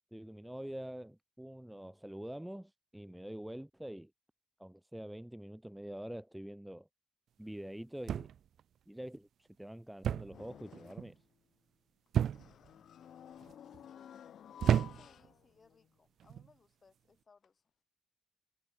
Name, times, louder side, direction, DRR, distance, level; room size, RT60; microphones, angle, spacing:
voice 1, 0.1-4.1 4.6-6.9 7.4-8.3 8.9-11.2, right 1 dB, 5° right, 2.8 m, -45 dB
sound 1, 8.1-8.6 10.0-10.4 10.7-11.1 12.1-12.7 13.4-13.8 14.6-15.3 16.2-16.5, right 9 dB, 50° right, 0.3 m, -32 dB
sound 2, 10.3-11.2 12.3-15.9 16.3-16.4 17.4-17.5, left 9 dB, 50° left, 6.7 m, -53 dB
voice 2, 13.6-14.3 14.9-17.6, left 5 dB, 25° left, 7.7 m, -67 dB
cardioid pair, 140°, 0 cm